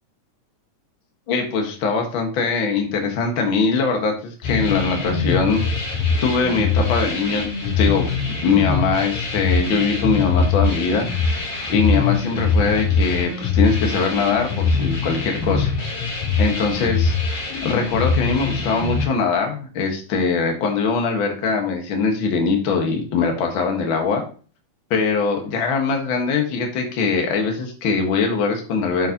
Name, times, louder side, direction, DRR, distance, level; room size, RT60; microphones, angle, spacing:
voice 1, 1.3-5.6 6.2-8.1 8.4-11.4 11.7-15.7 16.4-17.2 17.6-24.2 24.9-29.1, left 5 dB, 50° left, 3 dB, 1.6 m, -22 dB
sound 1, 4.4-19.1, left 4 dB, 65° left, 4.8 m, -22 dB
7.3 x 7.0 x 2.9 m, 0.39 s
omnidirectional pair, 3.9 m